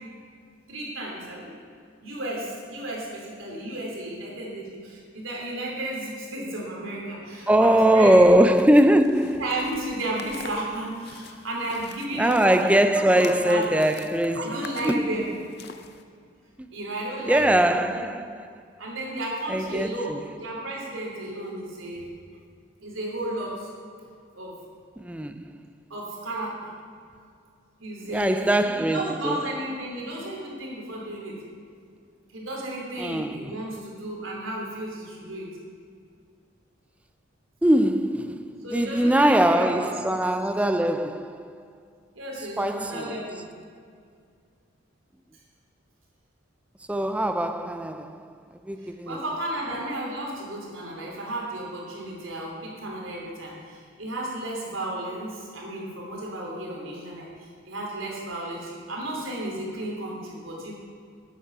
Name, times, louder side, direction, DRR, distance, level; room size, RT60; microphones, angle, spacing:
voice 1, 0.7-1.5 2.0-8.5 9.4-13.6 14.3-15.3 16.7-18.1 18.8-22.1 22.8-23.7 24.3-24.6 25.9-26.7 27.8-31.4 32.3-35.6 38.6-40.2 42.1-43.5 48.8-60.7, right 1 dB, 90° right, 3.0 m, -33 dB
voice 2, 7.5-9.5 12.2-15.1 16.6-16.7 17.3-18.6 19.5-20.3 25.0-25.7 28.1-29.5 33.0-33.6 37.6-41.7 42.6-43.2 46.9-48.3 48.7-49.2, right 1 dB, 5° right, 0.3 m, -22 dB
sound 1, 8.5-16.0, left 5 dB, 55° left, 0.6 m, -45 dB
10.0 x 8.2 x 6.0 m
head